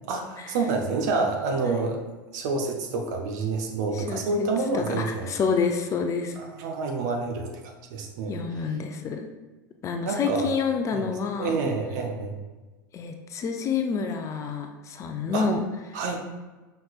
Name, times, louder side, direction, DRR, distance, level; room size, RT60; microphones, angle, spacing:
voice 1, 0.1-2.1 2.3-5.3 6.4-8.3 10.0-10.5 10.9-11.1 11.4-12.4 15.3-15.5 15.9-16.2, right 3 dB, 55° right, 2 dB, 0.7 m, -28 dB
voice 2, 1.6-1.9 3.9-4.5 4.7-6.4 8.3-9.3 9.8-11.5 12.9-15.7 15.9-16.0, left 5 dB, 30° left, 5 dB, 0.4 m, -28 dB
5.6 x 3.2 x 2.4 m, 1.2 s
figure-of-eight pair, 80°, 11 cm